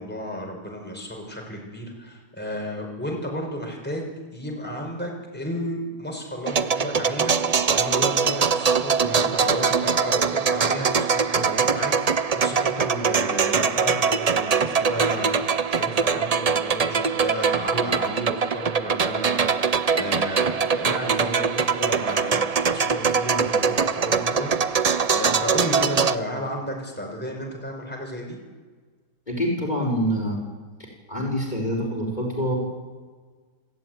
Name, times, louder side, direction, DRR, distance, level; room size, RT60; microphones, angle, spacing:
voice 1, 0.0-24.8 25.1-28.4, equal, 5° left, 1 dB, 5.3 m, -33 dB
sound 1, 6.5-26.2, right 6 dB, 75° right, 0.3 m, -22 dB
voice 2, 29.3-30.4 30.8-32.6, equal, 25° left, 0 dB, 5.5 m, -26 dB
30.0 x 14.0 x 9.4 m, 1.4 s
omnidirectional pair, 1.8 m